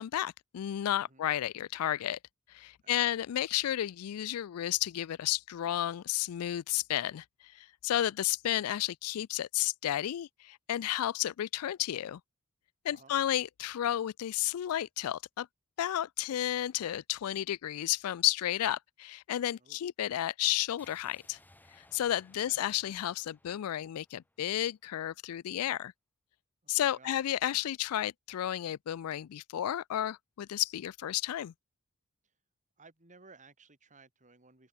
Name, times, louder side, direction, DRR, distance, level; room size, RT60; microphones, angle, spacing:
voice 1, 0.0-2.2 2.5-7.2 7.5-12.2 12.8-15.5 15.8-21.4 21.9-25.9 26.7-31.5, left 12 dB, 75° left, 0.3 m, -32 dB
sound 1, 20.8-24.8, left 1 dB, 10° left, 3.1 m, -63 dB
voice 2, 26.7-27.2 32.8-34.7, right 4 dB, 35° right, 3.4 m, -58 dB
open air
head